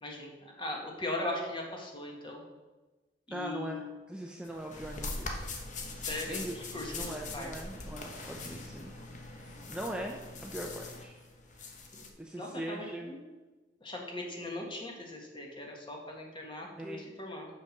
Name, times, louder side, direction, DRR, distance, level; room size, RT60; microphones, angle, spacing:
voice 1, 0.0-2.4 3.3-4.0 5.9-7.5 11.9-12.0 12.3-13.2 13.8-17.5, left 2 dB, 30° left, 0 dB, 1.5 m, -39 dB
voice 2, 3.3-5.5 6.3-6.5 6.9-8.9 9.2-11.2 12.2-13.1 16.8-17.0, right 1 dB, 5° right, 1 dB, 0.5 m, -41 dB
sound 1, 4.4-12.1, left 3 dB, 45° left, 1.0 m, -42 dB
6.1 x 5.2 x 6.5 m, 1.2 s
head